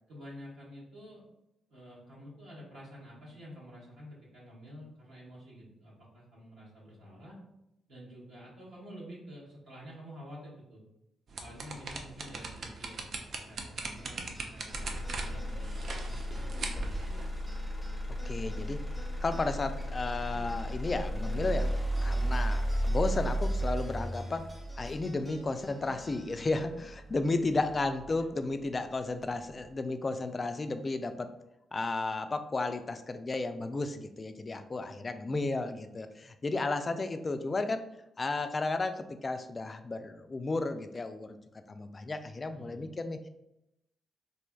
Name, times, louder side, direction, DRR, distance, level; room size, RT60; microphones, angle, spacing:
voice 1, 0.1-1.2 1.7-7.4 7.9-10.8 11.4-13.0 13.3-16.6 22.0-22.1 27.1-27.2 27.6-27.7 28.2-28.3 34.8-34.9 42.5-42.9, equal, 75° right, -7 dB, 1.2 m, -49 dB
sound 1, 11.3-17.4, right 3 dB, 60° right, 0.4 m, -41 dB
sound 2, 14.0-28.7, equal, 30° right, 1.0 m, -54 dB
Motor vehicle (road), 14.7-28.7 29.2-29.7, equal, 5° left, 0.8 m, -34 dB
voice 2, 18.2-18.8 19.2-24.5 24.8-31.3 31.7-37.8 38.2-41.4 41.7-43.2, left 3 dB, 40° left, 9 dB, 0.3 m, -33 dB
3.1 x 2.6 x 2.3 m, 0.86 s
hypercardioid pair, 45°, 0 cm